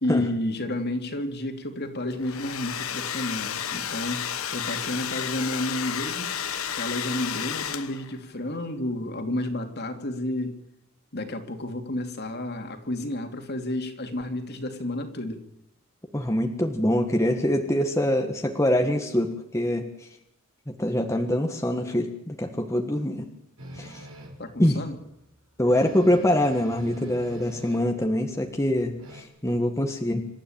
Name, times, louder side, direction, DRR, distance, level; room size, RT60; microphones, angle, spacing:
voice 1, 0.0-4.3 4.5-6.3 6.8-10.5 11.1-15.4 24.4-25.0, left 1 dB, 50° left, 5 dB, 2.8 m, -31 dB
Domestic sounds home sounds, 2.1-8.2, left 9 dB, 80° left, 1.3 m, -32 dB
voice 2, 16.1-20.1 20.7-23.3 23.8-24.0 24.6-24.8 25.6-30.2, left 1 dB, 15° left, 3 dB, 1.6 m, -24 dB
sound 1, 23.6-24.5 25.0-25.1 25.3-25.4 25.6-28.0 28.3-29.2, equal, 80° right, 5.3 m, -44 dB
27.0 x 12.5 x 9.0 m, 0.82 s
head